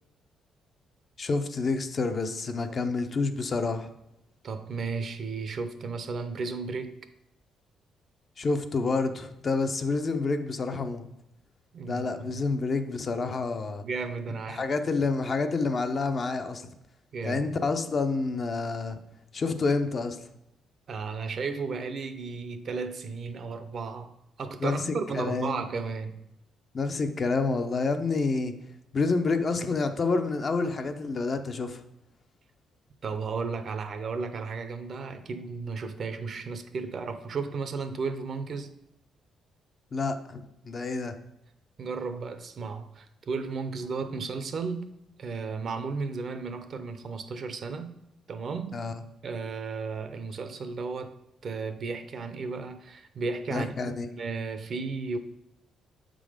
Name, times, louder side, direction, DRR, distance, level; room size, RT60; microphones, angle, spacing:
voice 1, 1.2-3.9 8.4-11.1 11.9-13.8 14.5-16.6 17.2-19.0 19.3-20.2 24.6-24.8 25.2-25.6 26.7-28.5 28.9-31.8 39.9-41.2 48.7-48.9 53.5-54.1, left 3 dB, 40° left, 0.7 m, -28 dB
voice 2, 4.4-7.0 11.7-12.0 12.3-12.4 13.8-14.6 17.1-17.4 20.9-24.1 24.4-26.2 33.0-38.7 41.8-44.9 45.2-47.9 48.3-48.9 49.2-51.2 51.4-55.2, right 4 dB, 50° right, 0.7 m, -34 dB
7.1 x 3.8 x 5.0 m
cardioid pair, 90°, 0 cm